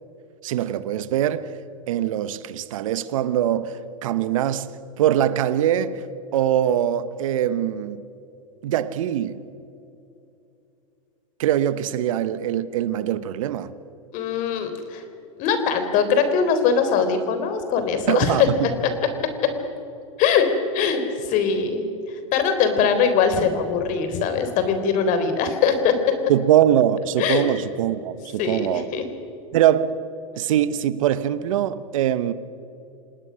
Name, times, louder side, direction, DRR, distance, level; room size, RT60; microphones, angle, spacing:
voice 1, 0.4-1.5 1.9-4.7 5.0-6.0 6.3-8.0 8.6-9.4 11.4-13.7 18.1-18.7 26.3-28.9 29.5-30.0 30.3-32.3, right 11 dB, 70° right, 1.1 m, -22 dB
voice 2, 14.1-15.0 15.4-18.5 20.2-20.5 20.7-21.0 21.3-21.8 22.3-26.0 27.2-27.5 28.4-29.0, left 6 dB, 50° left, 3.8 m, -21 dB
27.5 x 19.0 x 6.4 m
hypercardioid pair, 105°, 17 cm